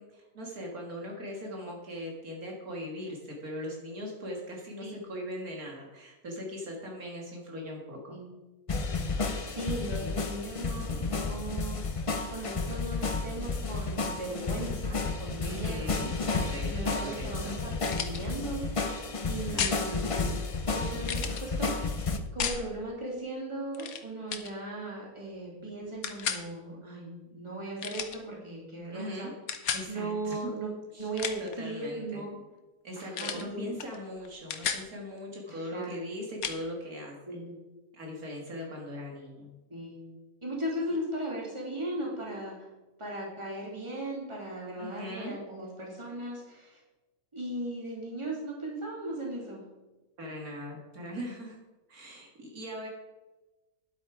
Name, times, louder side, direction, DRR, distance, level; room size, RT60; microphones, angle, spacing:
voice 1, 0.0-8.2 15.4-17.5 19.3-19.7 28.9-29.3 29.7-30.5 30.9-31.1 31.4-32.2 32.8-37.4 37.9-39.5 40.9-41.0 44.8-45.3 50.2-51.6 51.9-52.9, equal, 70° right, -1 dB, 2.2 m, -40 dB
sound 1, 8.7-22.2, left 3 dB, 55° left, 0.3 m, -32 dB
voice 2, 9.0-11.8 12.3-15.9 16.6-18.8 19.2-20.4 20.7-22.0 22.3-29.3 29.9-30.7 31.0-32.4 33.0-33.7 35.5-36.0 37.3-37.5 39.7-40.0 40.4-42.6 43.0-46.8 47.3-49.6, right 1 dB, 20° right, -4 dB, 2.9 m, -37 dB
sound 2, 17.8-18.2 19.6-19.8 21.0-21.4 22.4-22.6 23.7-24.0 24.3-24.5 26.0-26.4 27.8-28.2 29.5-29.9 31.0-31.5 33.1-33.5 33.8-34.0 34.2-34.9 36.4-36.6, left 7 dB, 70° left, 1.3 m, -33 dB
10.5 x 8.1 x 4.8 m, 1.1 s
omnidirectional pair, 1.6 m